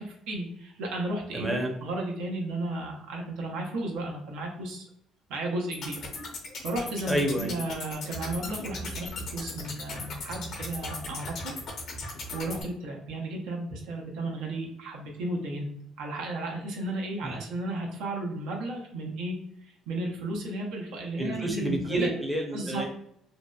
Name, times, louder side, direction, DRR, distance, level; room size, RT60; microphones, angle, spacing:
voice 1, 0.0-4.9 5.3-6.0 6.6-11.5 11.9-15.7 16.0-19.4 19.6-22.1 22.5-22.8, right 1 dB, 85° right, 0 dB, 0.6 m, -34 dB
voice 2, 1.3-1.7 7.1-7.5 17.2-17.4 21.2-22.9, right 1 dB, 5° right, 1 dB, 0.5 m, -29 dB
sound 1, 5.7-12.6, left 2 dB, 60° left, 0.6 m, -38 dB
2.7 x 2.0 x 2.2 m, 0.71 s
cardioid pair, 110°, 0 cm